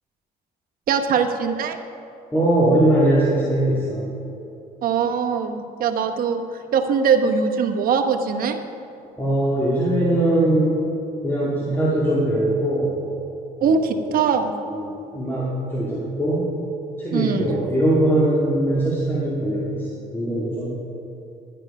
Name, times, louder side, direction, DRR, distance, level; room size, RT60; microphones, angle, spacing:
voice 1, 0.9-1.8 4.8-6.4 6.7-8.6 13.6-14.5 17.1-17.5, right 6 dB, 60° right, 5 dB, 1.0 m, -21 dB
voice 2, 2.3-4.1 9.2-10.7 11.2-12.9 13.6-14.1 14.6-16.4 17.0-20.7, right 1 dB, 15° left, -7 dB, 2.2 m, -21 dB
11.0 x 9.8 x 5.4 m, 2.7 s
cardioid pair, 110°, 17 cm